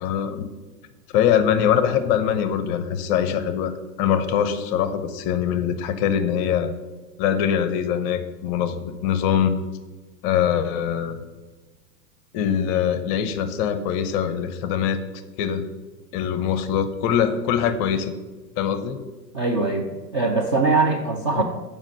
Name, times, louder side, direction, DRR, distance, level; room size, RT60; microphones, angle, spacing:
voice 1, 0.0-0.4 1.1-6.7 7.2-9.5 10.2-11.2 12.3-15.0 15.4-15.7 16.1-18.1 18.6-19.0 21.3-21.4, left 8 dB, 30° left, 10 dB, 0.6 m, -23 dB
voice 2, 19.3-21.4, right 3 dB, 20° right, 1 dB, 0.3 m, -22 dB
7.3 x 5.0 x 6.4 m, 1.3 s
figure-of-eight pair, 100°, 48 cm